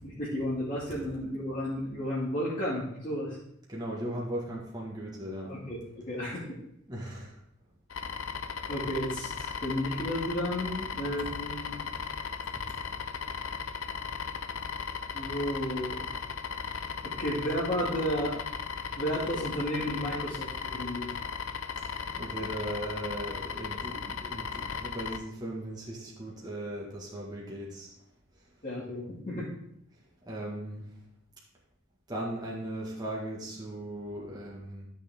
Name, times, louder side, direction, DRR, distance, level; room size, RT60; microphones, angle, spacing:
voice 1, 0.0-3.4 5.5-6.5 8.7-11.8 15.1-16.0 17.0-18.3 18.9-21.0 28.6-29.5, equal, 40° left, -8 dB, 2.3 m, -32 dB
voice 2, 3.7-5.5 6.9-7.3 22.2-27.9 30.3-30.9 32.1-34.9, right 1 dB, 20° right, -4 dB, 1.8 m, -38 dB
sound 1, 7.9-25.2, left 6 dB, 85° left, 0.7 m, -36 dB
13.0 x 6.5 x 3.7 m, 0.72 s
head